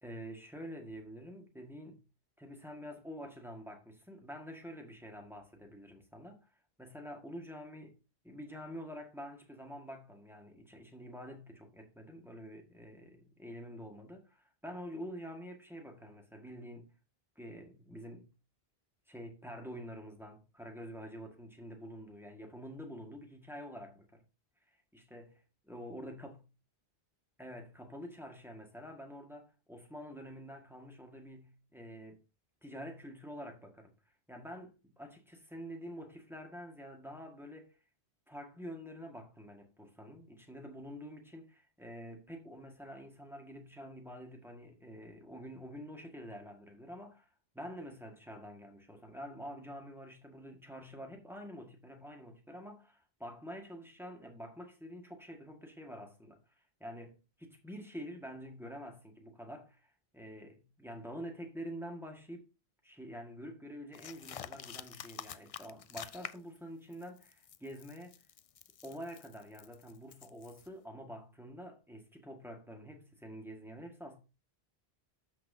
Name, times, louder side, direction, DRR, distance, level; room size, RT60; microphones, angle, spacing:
voice 1, 0.0-2.0 2.4-6.5 6.8-7.9 8.2-16.9 17.4-18.3 19.1-24.2 24.9-25.4 25.7-26.4 27.4-32.2 32.6-33.9 34.3-37.8 38.3-56.4 56.8-62.5 62.8-68.2 68.8-74.2, equal, ahead, 1.8 m, -47 dB
sound 1, 63.9-66.6 66.9-70.7, left 8 dB, 60° left, 0.3 m, -48 dB
13.0 x 5.9 x 2.8 m
omnidirectional pair, 1.1 m